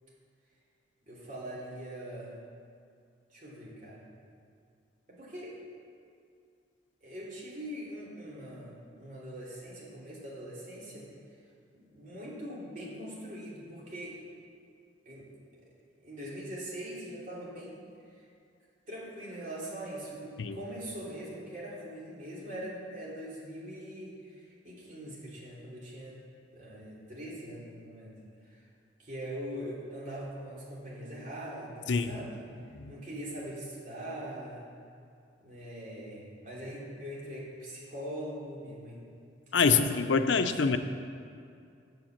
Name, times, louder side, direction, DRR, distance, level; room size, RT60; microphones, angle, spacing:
voice 1, 1.1-2.3 3.3-4.0 5.1-5.6 7.0-11.1 11.7-14.2 15.0-15.3 16.0-17.8 18.1-18.2 18.9-26.2 26.5-28.1 28.5-28.6 29.0-32.4 32.9-34.6 35.4-39.1 39.6-40.8, right 1 dB, 45° right, -6 dB, 3.1 m, -42 dB
voice 2, 39.5-40.8, left 5 dB, 90° left, 9 dB, 0.6 m, -25 dB
7.9 x 7.8 x 7.2 m, 2.4 s
head